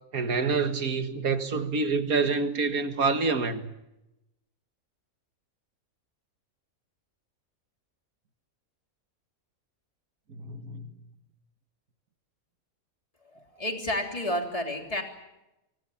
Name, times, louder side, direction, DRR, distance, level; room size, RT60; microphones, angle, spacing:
voice 1, 0.1-3.7 10.3-10.9, right 4 dB, 90° right, 2.3 m, -27 dB
voice 2, 13.3-15.0, left 1 dB, 25° left, 3.4 m, -30 dB
25.0 x 24.5 x 7.3 m
omnidirectional pair, 1.5 m